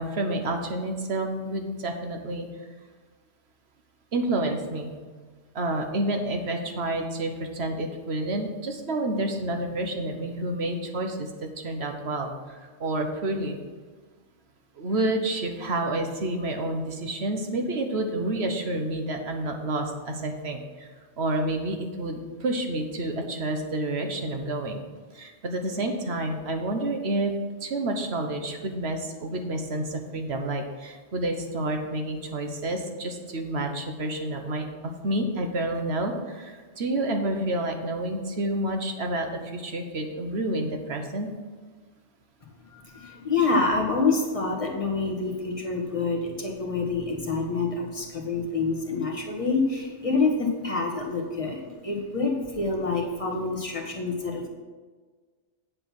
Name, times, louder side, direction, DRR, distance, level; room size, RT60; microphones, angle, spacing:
voice 1, 0.0-2.5 4.1-4.9 5.5-13.6 14.8-20.9 21.2-24.8 25.1-27.3 27.6-41.3 45.3-45.5, right 1 dB, 65° right, 4 dB, 1.4 m, -29 dB
voice 2, 42.7-54.5, left 3 dB, 30° left, 0 dB, 1.6 m, -27 dB
7.9 x 7.8 x 6.0 m, 1.4 s
omnidirectional pair, 1.2 m